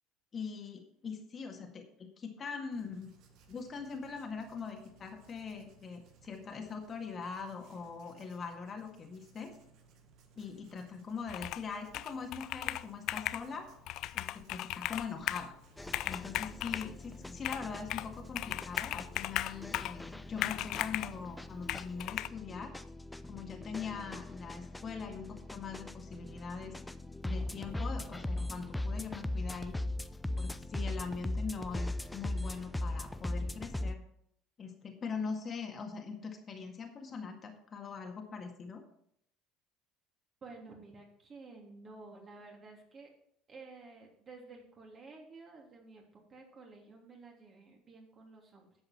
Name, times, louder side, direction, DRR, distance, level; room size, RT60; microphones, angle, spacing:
voice 1, 0.3-3.1 3.5-9.5 10.4-13.7 14.1-15.5 16.1-22.7 23.3-26.8 27.2-29.8 30.4-34.0 34.6-38.8, left 5 dB, 35° left, 3 dB, 1.9 m, -42 dB
Writing, 2.7-19.8, right 5 dB, 55° right, 1.6 m, -63 dB
Computer keyboard, 11.3-11.7 11.9-13.4 13.9-15.5 15.8-16.9 17.4-18.1 18.4-20.0 20.4-21.2 21.7-22.3, left 14 dB, 55° left, 0.3 m, -37 dB
sound 1, 15.8-34.0, left 1 dB, 5° left, 0.6 m, -40 dB
voice 2, 40.4-43.1 43.5-48.7, right 3 dB, 35° right, 0 dB, 3.2 m, -52 dB
11.0 x 7.7 x 4.5 m, 0.70 s
figure-of-eight pair, 65°, 0 cm